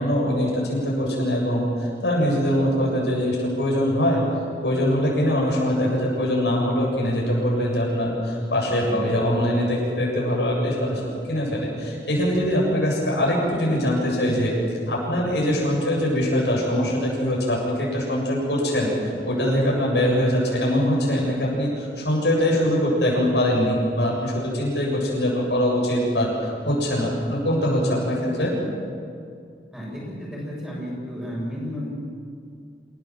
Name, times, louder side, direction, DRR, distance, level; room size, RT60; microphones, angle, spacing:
voice 1, 0.0-4.2 4.6-11.0 11.3-14.5 14.9-28.5, equal, 85° left, -3 dB, 7.9 m, -23 dB
voice 2, 29.7-31.9, equal, 5° right, -5 dB, 7.4 m, -32 dB
28.0 x 17.0 x 7.6 m, 2.3 s
head